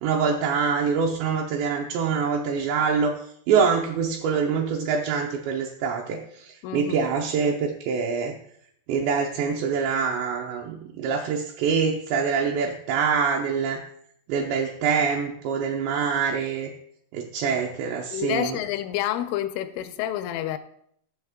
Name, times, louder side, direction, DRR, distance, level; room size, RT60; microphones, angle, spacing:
voice 1, 0.0-3.2 3.5-8.3 8.9-13.8 14.3-16.7 17.1-18.6, right 6 dB, 75° right, 2.7 m, -25 dB
voice 2, 6.6-7.0 18.1-20.6, left 12 dB, 90° left, 3.1 m, -28 dB
12.5 x 7.3 x 3.6 m
omnidirectional pair, 5.6 m